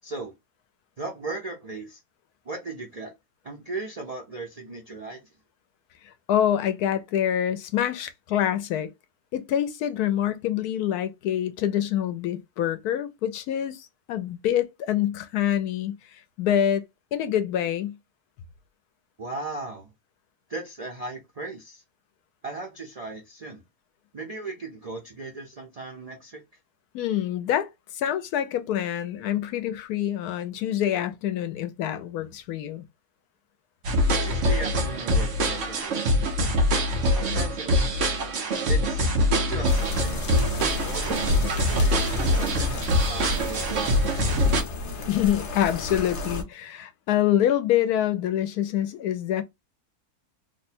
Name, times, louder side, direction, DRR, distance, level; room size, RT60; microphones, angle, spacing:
voice 1, 0.0-0.3 1.0-2.0 2.4-3.1 3.4-5.2 19.2-19.9 20.5-21.8 22.4-23.6 24.1-26.4 34.2-36.3 37.1-38.1 38.7-44.6, right 3 dB, 85° right, 0.3 m, -37 dB
voice 2, 6.0-8.9 9.3-16.0 16.4-16.8 17.1-18.0 26.9-32.8 45.1-49.4, left 11 dB, 75° left, 1.1 m, -26 dB
sound 1, 33.8-44.6, equal, 55° right, 1.1 m, -24 dB
sound 2, 39.7-46.4, left 2 dB, 55° left, 0.9 m, -33 dB
3.1 x 2.2 x 4.2 m
omnidirectional pair, 1.7 m